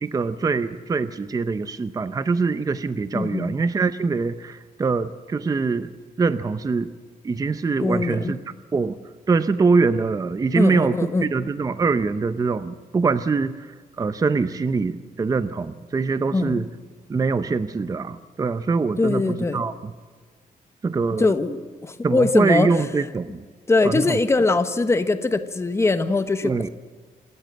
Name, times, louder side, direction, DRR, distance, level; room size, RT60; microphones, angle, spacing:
voice 1, 0.0-5.9 6.2-6.9 7.2-8.4 8.7-9.0 9.3-16.7 17.1-19.9 20.8-21.3 22.0-23.4 23.8-24.2 26.4-26.7, right 4 dB, 25° right, 12 dB, 0.6 m, -23 dB
voice 2, 3.1-3.5 7.8-8.4 10.5-11.3 16.3-16.6 19.0-19.6 21.2-22.8 23.7-26.7, left 3 dB, 20° left, 10 dB, 1.1 m, -22 dB
27.5 x 13.5 x 7.8 m, 1.5 s
wide cardioid pair, 155°, 15 cm